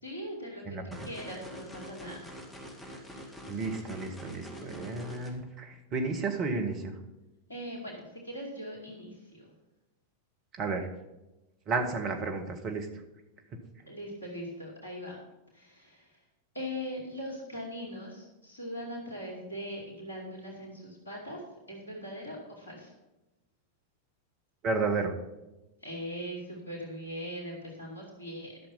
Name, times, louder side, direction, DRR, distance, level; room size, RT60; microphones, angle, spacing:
voice 1, 0.0-0.8 1.0-2.3 3.5-3.7 7.5-9.5 13.9-15.2 15.5-16.2 16.5-22.9 25.8-28.6, equal, 80° left, -2 dB, 2.6 m, -40 dB
voice 2, 0.6-1.0 3.5-6.9 10.6-10.9 11.7-12.9 24.6-25.1, right 3 dB, 35° right, 6 dB, 1.6 m, -32 dB
sound 1, 0.9-5.3, equal, 10° left, 2.4 m, -45 dB
12.0 x 6.8 x 5.7 m, 1.0 s
figure-of-eight pair, 90°, 0 cm